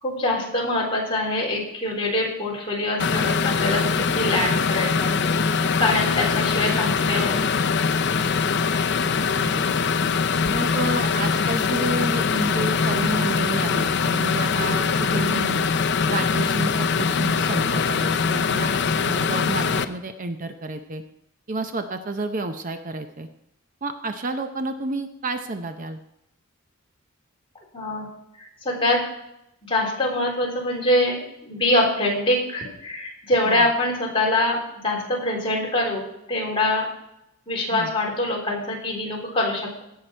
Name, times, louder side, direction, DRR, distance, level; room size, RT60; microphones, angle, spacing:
voice 1, 0.0-5.4 5.8-7.4 27.7-28.1 28.6-29.0 29.7-36.9 37.5-39.8, left 1 dB, 25° left, -3 dB, 3.6 m, -24 dB
sound 1, 3.0-19.8, left 5 dB, 55° left, 0.6 m, -22 dB
voice 2, 9.1-9.8 10.5-21.0 21.5-23.3 23.8-26.0 33.4-33.7 37.7-37.9, right 2 dB, 40° right, 7 dB, 0.6 m, -30 dB
17.5 x 6.7 x 4.4 m, 0.82 s
head